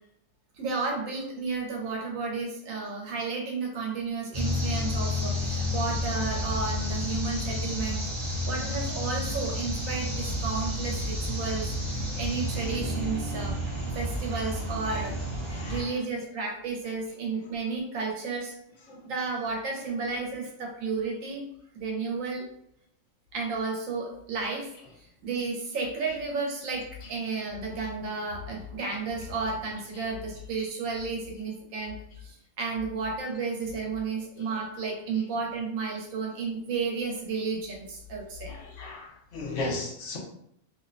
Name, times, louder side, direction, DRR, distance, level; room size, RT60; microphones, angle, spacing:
voice 1, 0.5-8.0 8.5-15.1 15.5-18.5 19.1-21.4 21.7-22.5 23.3-24.7 25.0-38.5, right 4 dB, 85° right, 0 dB, 1.1 m, -32 dB
sound 1, 4.3-15.8, left 1 dB, 30° right, 1.0 m, -31 dB
voice 2, 15.5-15.9 18.9-19.1 38.5-40.2, left 2 dB, 70° left, -1 dB, 0.9 m, -36 dB
2.6 x 2.1 x 2.4 m, 0.72 s
omnidirectional pair, 1.4 m